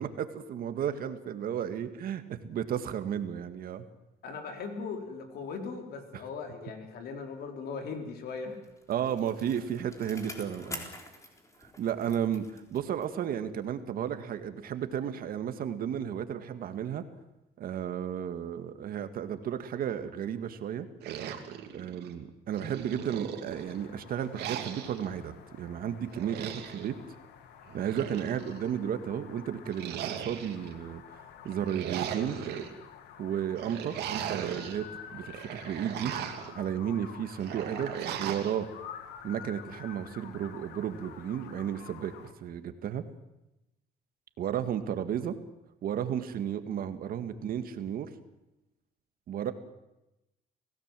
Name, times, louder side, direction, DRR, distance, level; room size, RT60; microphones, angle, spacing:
voice 1, 0.0-3.9 8.9-10.9 11.6-17.0 17.6-20.9 21.7-27.0 27.7-32.6 33.2-36.1 36.5-37.9 38.2-38.7 39.2-42.1 42.4-43.0 44.4-45.4 45.8-48.1 49.3-49.5, right 9 dB, 60° right, 9 dB, 1.9 m, -33 dB
voice 2, 4.2-8.7, left 5 dB, 65° left, 4 dB, 4.5 m, -39 dB
Bicycle, 8.4-13.3 13.6-13.7, left 2 dB, 20° left, 3.9 m, -47 dB
sound 1, 21.0-22.1 22.6-23.8 24.3-25.1 26.1-26.9 27.7-28.7 29.7-30.7 31.5-32.7 33.6-34.8 35.2-36.5 37.4-38.5, right 9 dB, 80° right, 2.6 m, -38 dB
sound 2, 23.5-42.3, left 8 dB, 80° left, 2.3 m, -49 dB
27.0 x 17.0 x 7.6 m, 0.93 s
cardioid pair, 110°, 17 cm